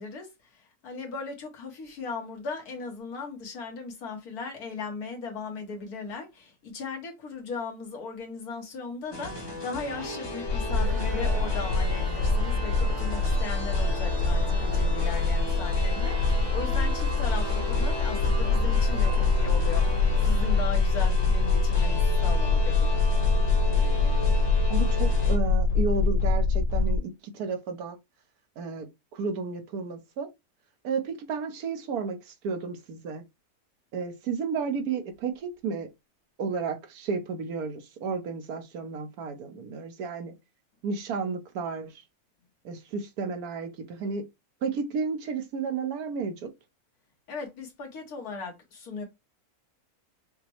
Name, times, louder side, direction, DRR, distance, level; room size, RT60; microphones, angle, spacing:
voice 1, 0.0-23.0 47.3-49.0, left 4 dB, 90° left, 1.7 m, -38 dB
sound 1, 9.1-25.4, equal, 25° left, 0.6 m, -36 dB
sound 2, 10.5-27.0, left 3 dB, 70° left, 1.6 m, -24 dB
sound 3, 10.7-20.6, right 6 dB, 50° right, 0.5 m, -42 dB
voice 2, 24.7-28.0 28.6-28.9 29.1-30.3 30.8-33.2 33.9-35.9 36.4-40.3 40.8-41.9 42.6-44.2 44.6-46.5, right 5 dB, 90° right, 1.3 m, -32 dB
5.8 x 2.1 x 2.9 m
omnidirectional pair, 1.6 m